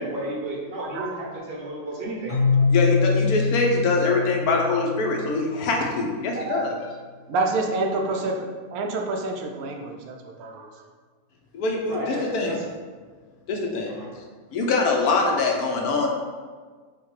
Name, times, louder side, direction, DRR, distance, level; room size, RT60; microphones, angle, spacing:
voice 1, 0.0-2.4 8.2-8.3 11.9-12.6 13.9-14.1, right 1 dB, 50° right, -3 dB, 0.8 m, -32 dB
voice 2, 0.8-1.3 6.3-6.7 7.3-10.9, right 3 dB, 75° right, 2 dB, 1.0 m, -28 dB
Keyboard (musical), 2.3-6.0, left 4 dB, 50° left, 1.6 m, -24 dB
voice 3, 2.7-6.7 11.5-12.5 13.5-13.9 14.5-16.1, left 3 dB, 80° left, 0 dB, 1.2 m, -23 dB
5.5 x 2.2 x 3.2 m, 1.5 s
omnidirectional pair, 1.6 m